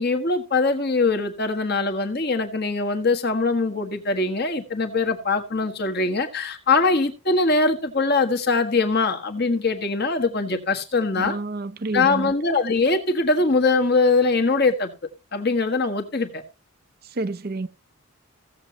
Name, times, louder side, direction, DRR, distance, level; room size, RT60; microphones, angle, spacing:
voice 1, 0.0-11.4 11.9-14.9 15.3-16.4, left 3 dB, 45° left, 1.5 m, -22 dB
voice 2, 11.2-12.4 17.0-17.7, right 2 dB, 45° right, 0.6 m, -29 dB
16.5 x 7.7 x 3.0 m
head